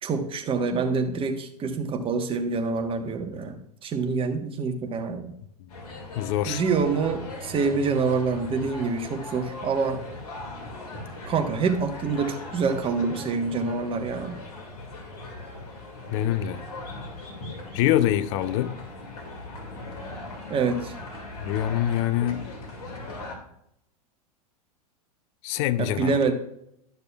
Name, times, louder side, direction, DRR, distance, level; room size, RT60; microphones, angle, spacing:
voice 1, 0.0-5.3 6.5-10.0 11.3-14.4 20.5-20.9 25.8-26.3, right 4 dB, 25° right, 1.2 m, -26 dB
sound 1, 5.7-23.4, left 2 dB, 70° left, 2.2 m, -39 dB
voice 2, 5.9-6.6 16.1-16.6 17.7-18.8 21.4-22.5 25.4-26.2, left 12 dB, 50° left, 0.5 m, -25 dB
12.0 x 6.7 x 2.3 m
hypercardioid pair, 95°, 20 cm